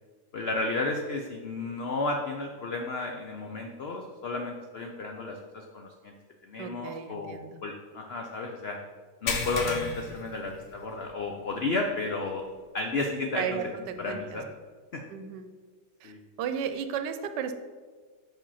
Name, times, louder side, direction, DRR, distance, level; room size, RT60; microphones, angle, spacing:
voice 1, 0.3-6.1 6.4-8.8 9.2-12.4 12.7-13.6 14.0-14.5 14.9-15.0 16.0-16.2, left 3 dB, 85° left, 2 dB, 0.5 m, -32 dB
voice 2, 6.6-7.6 13.4-14.4 15.1-15.5 16.0-16.1 16.4-17.5, right 7 dB, 85° right, 9 dB, 1.2 m, -34 dB
sound 1, 9.3-11.1 11.5-11.7 12.2-12.3 13.9-14.0, left 4 dB, 55° left, 1.1 m, -34 dB
5.4 x 5.0 x 5.5 m, 1.5 s
omnidirectional pair, 1.8 m